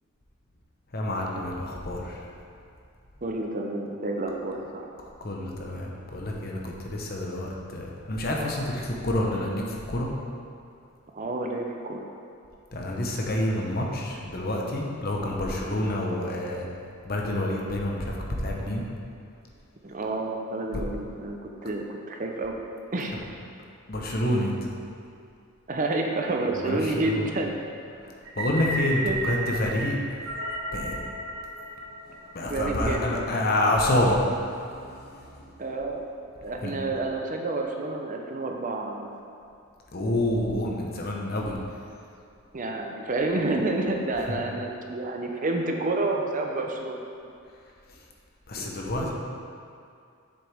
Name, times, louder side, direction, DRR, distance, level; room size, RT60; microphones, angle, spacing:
voice 1, 0.9-2.3 5.2-10.1 12.7-16.7 17.0-18.8 20.7-20.8 23.9-24.5 26.5-27.3 28.4-30.2 30.7-31.0 32.3-35.4 36.6-36.7 39.9-41.6 44.3-44.4 48.5-49.1, left 1 dB, 45° left, -1 dB, 0.9 m, -28 dB
voice 2, 3.2-4.9 11.1-12.1 19.8-22.6 22.9-23.1 25.7-27.5 29.0-29.2 32.5-33.1 35.6-36.0 36.4-39.1 42.5-47.3 48.5-48.7 49.0-49.1, right 2 dB, 40° right, 2 dB, 0.6 m, -29 dB
sound 1, 28.3-32.6, right 1 dB, 75° right, 1.2 m, -33 dB
7.9 x 6.8 x 3.5 m, 2.4 s
head